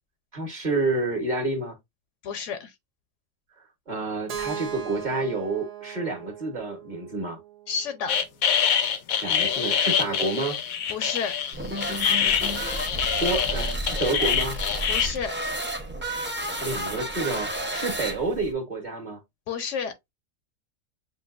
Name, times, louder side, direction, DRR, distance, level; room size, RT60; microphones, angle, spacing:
voice 1, 0.3-1.7 3.9-7.4 9.2-10.6 13.2-14.6 16.6-19.2, right 3 dB, 35° right, 1.3 m, -29 dB
voice 2, 2.2-2.7 7.7-8.2 10.9-11.3 14.9-15.3 19.5-19.9, left 6 dB, 70° left, 1.0 m, -30 dB
Keyboard (musical), 4.3-8.2, right 8 dB, 60° right, 0.4 m, -38 dB
sound 1, 8.1-15.1, left 8 dB, 90° left, 1.2 m, -25 dB
sound 2, 11.5-18.5, right 1 dB, 10° right, 0.6 m, -31 dB
7.3 x 2.6 x 2.5 m
omnidirectional pair, 1.4 m